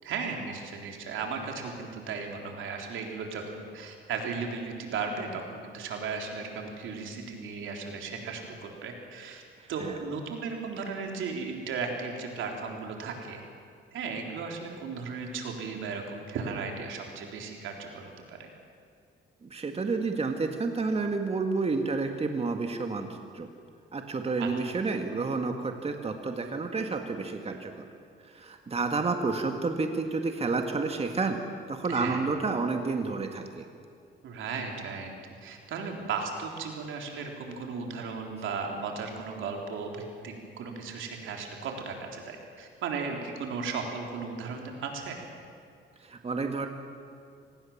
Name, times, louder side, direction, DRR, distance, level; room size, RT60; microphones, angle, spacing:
voice 1, 0.0-9.4 9.7-13.4 13.9-18.5 24.4-24.5 31.9-32.2 34.2-35.1 35.4-45.2, right 5 dB, 80° right, 2 dB, 3.7 m, -36 dB
voice 2, 19.4-23.5 23.9-27.9 28.2-31.4 31.7-33.7 46.0-46.7, right 4 dB, 30° right, 5 dB, 1.9 m, -30 dB
25.5 x 19.0 x 7.3 m, 2.4 s
cardioid pair, 90°, 20 cm